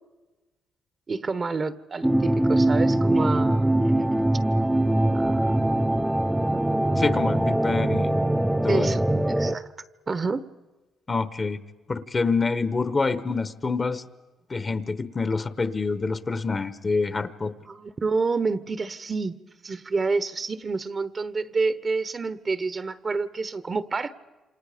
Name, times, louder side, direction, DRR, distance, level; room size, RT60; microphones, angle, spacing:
voice 1, 1.1-3.9 5.1-5.5 8.7-9.7 10.1-10.4 17.7-19.3 19.6-24.1, right 4 dB, 35° right, 1.0 m, -28 dB
sound 1, 2.0-9.6, right 1 dB, 5° right, 0.7 m, -22 dB
voice 2, 7.0-8.2 8.6-8.9 11.1-11.6 11.9-14.0 14.5-17.5, left 4 dB, 30° left, 1.1 m, -26 dB
28.5 x 26.5 x 5.1 m
cardioid pair, 90°, 0 cm